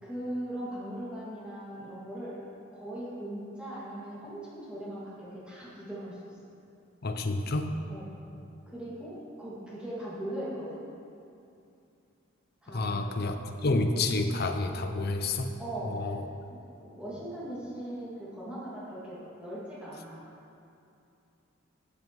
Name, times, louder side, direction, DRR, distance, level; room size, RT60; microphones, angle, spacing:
voice 1, 0.0-2.4 2.7-6.5 7.9-8.1 8.7-10.8 12.6-13.0 13.4-13.5 15.6-16.2 16.5-20.2, right 1 dB, 5° right, -10 dB, 2.4 m, -39 dB
voice 2, 7.0-7.7 12.7-15.6 15.9-16.2, left 2 dB, 50° left, 6 dB, 0.6 m, -29 dB
13.0 x 7.1 x 3.2 m, 2.6 s
head